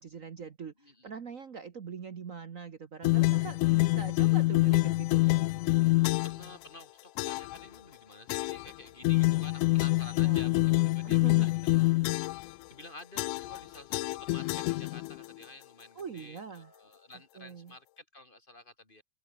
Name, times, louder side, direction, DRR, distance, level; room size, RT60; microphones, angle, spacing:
voice 1, 0.0-5.4 10.2-10.5 11.0-11.5 15.9-16.7 17.3-17.7, right 6 dB, 80° right, 0.7 m, -43 dB
voice 2, 0.8-1.1 6.0-12.3 12.7-19.0, left 2 dB, 15° left, 3.1 m, -51 dB
sound 1, 3.0-6.5 7.2-7.6 8.3-8.7 9.0-12.5 13.2-13.6 13.9-15.3, left 20 dB, 85° left, 2.0 m, -26 dB
open air
omnidirectional pair, 3.5 m